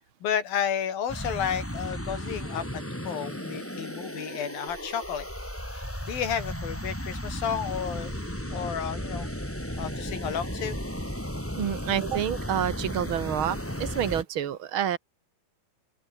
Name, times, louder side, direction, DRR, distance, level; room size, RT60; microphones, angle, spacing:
voice 1, 0.2-5.3 5.7-9.3 9.8-10.8, left 8 dB, 70° left, 4.8 m, -32 dB
sound 1, 1.1-14.2, equal, 5° left, 5.2 m, -35 dB
voice 2, 11.6-15.0, right 10 dB, 50° right, 1.6 m, -28 dB
open air
omnidirectional pair, 4.3 m